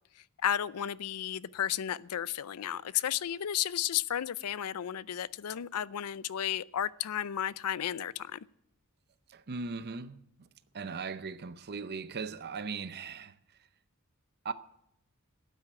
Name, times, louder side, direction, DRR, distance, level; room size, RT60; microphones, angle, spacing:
voice 1, 0.4-8.4, left 10 dB, 85° left, 0.5 m, -33 dB
voice 2, 9.3-10.5 10.7-13.4 14.4-14.5, right 4 dB, 45° right, 0.6 m, -38 dB
12.5 x 9.2 x 8.7 m
head